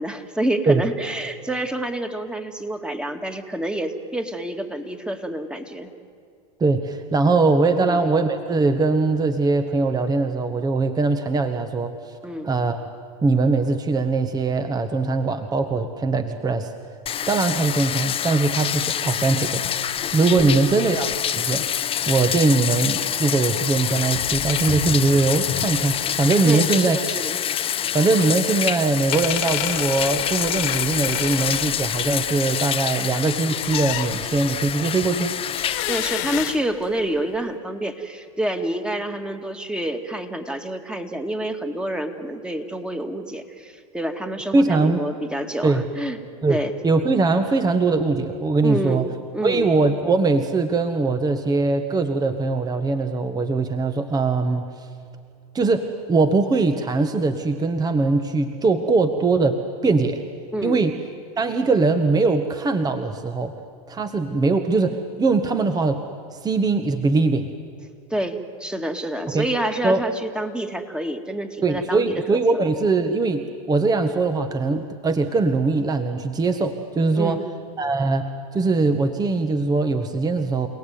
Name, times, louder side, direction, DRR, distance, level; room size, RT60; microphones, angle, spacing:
voice 1, 0.0-5.9 7.8-8.0 12.2-12.5 20.4-20.7 26.4-27.4 33.0-33.1 35.9-46.2 46.5-46.7 48.6-49.7 60.5-60.8 68.1-72.2 77.2-77.4, right 1 dB, 5° right, 6 dB, 2.3 m, -28 dB
voice 2, 6.6-12.1 12.4-12.8 13.2-16.7 17.3-21.1 21.4-21.7 22.1-27.0 27.9-35.3 44.5-45.0 45.6-45.8 46.4-49.0 49.4-54.9 55.5-60.2 60.6-60.9 61.4-63.5 63.9-66.0 66.3-67.5 69.3-69.4 69.8-70.0 71.6-77.4 77.8-80.7, right 3 dB, 20° right, 8 dB, 1.5 m, -21 dB
Bathtub (filling or washing), 17.1-36.1, left 9 dB, 30° left, 1.0 m, -26 dB
sound 1, 24.3-24.7 29.1-32.4 33.6-34.5 35.5-37.3, left 15 dB, 65° left, 1.9 m, -30 dB
29.5 x 18.5 x 9.6 m, 2.3 s
hypercardioid pair, 100°, 19 cm